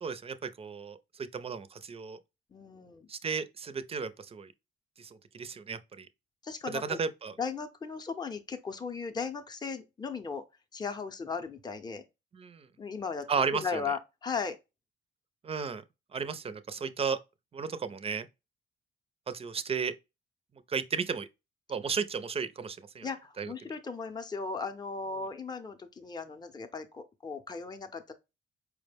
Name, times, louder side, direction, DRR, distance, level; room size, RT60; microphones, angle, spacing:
voice 1, 0.0-2.2 3.1-4.5 5.0-6.1 6.7-7.3 12.3-12.7 13.3-13.8 15.4-15.8 16.1-17.2 17.5-18.3 19.3-19.9 20.7-21.3 21.7-23.1 23.4-23.5, right 5 dB, 30° right, 0.5 m, -34 dB
voice 2, 2.5-3.1 6.4-7.0 7.4-10.4 10.7-12.0 12.8-14.6 23.0-28.1, left 5 dB, 20° left, 0.6 m, -37 dB
4.7 x 2.1 x 3.3 m
cardioid pair, 90°, 20 cm